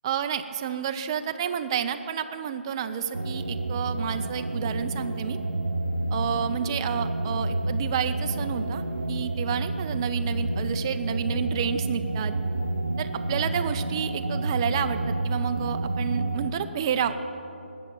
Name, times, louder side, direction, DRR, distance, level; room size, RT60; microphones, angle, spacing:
voice 1, 0.0-5.4 6.1-12.3 13.0-17.2, right 8 dB, 25° right, 8 dB, 0.4 m, -30 dB
sound 1, 3.1-16.5, right 2 dB, 65° right, 0.7 m, -29 dB
19.5 x 6.8 x 7.4 m, 2.9 s
figure-of-eight pair, 145°, 6 cm